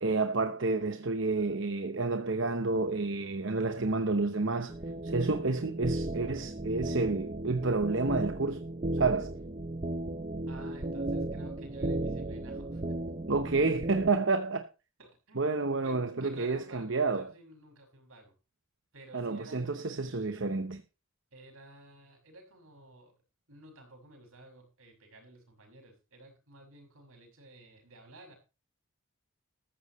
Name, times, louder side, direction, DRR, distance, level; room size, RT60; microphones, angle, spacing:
voice 1, 0.0-4.7 5.0-8.6 8.9-9.3 13.3-14.7 15.4-17.3 19.1-20.8, right 3 dB, 60° right, 0.9 m, -30 dB
sound 1, 4.7-14.1, right 1 dB, 30° right, 0.6 m, -35 dB
voice 2, 10.5-12.8 15.0-18.3 18.9-20.0 21.3-23.1 23.5-28.3, right 1 dB, 80° right, 6.2 m, -53 dB
14.0 x 14.0 x 3.1 m
head